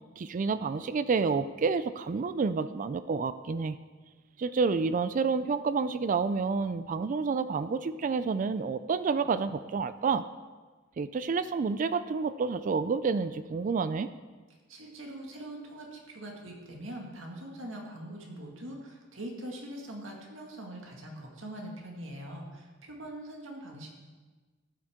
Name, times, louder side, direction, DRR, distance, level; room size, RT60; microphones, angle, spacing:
voice 1, 0.2-3.8 4.4-10.2 11.0-14.1, right 5 dB, 40° right, 13 dB, 0.3 m, -29 dB
voice 2, 14.7-23.9, right 1 dB, 85° right, 0 dB, 2.1 m, -42 dB
13.5 x 8.8 x 3.7 m, 1.3 s
head